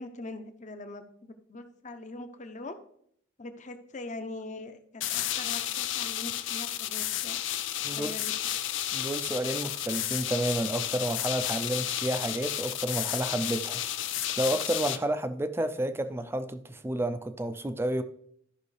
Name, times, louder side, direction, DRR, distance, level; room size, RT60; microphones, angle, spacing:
voice 1, 0.0-2.8 3.4-7.4 7.9-8.3, left 2 dB, 40° left, 0.7 m, -42 dB
sound 1, 5.0-15.0, left 12 dB, 80° left, 0.5 m, -32 dB
voice 2, 8.9-13.8 14.4-18.0, right 1 dB, 15° right, 0.4 m, -30 dB
13.5 x 5.6 x 3.3 m
head